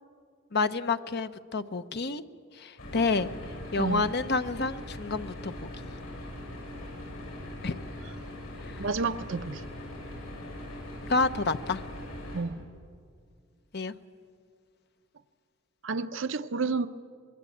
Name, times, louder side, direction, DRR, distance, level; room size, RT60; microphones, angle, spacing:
voice 1, 0.5-2.2 2.6-3.3 3.7-5.7 7.6-7.8 8.7-8.8 11.1-11.8 13.7-13.9, left 3 dB, 50° left, 10 dB, 0.8 m, -29 dB
sound 1, 2.8-12.4, left 1 dB, 90° left, 7.9 m, -41 dB
voice 2, 3.8-4.1 8.8-9.6 12.3-12.6 15.8-16.9, right 4 dB, 65° right, 10 dB, 0.7 m, -30 dB
24.5 x 21.5 x 8.6 m, 2.2 s
head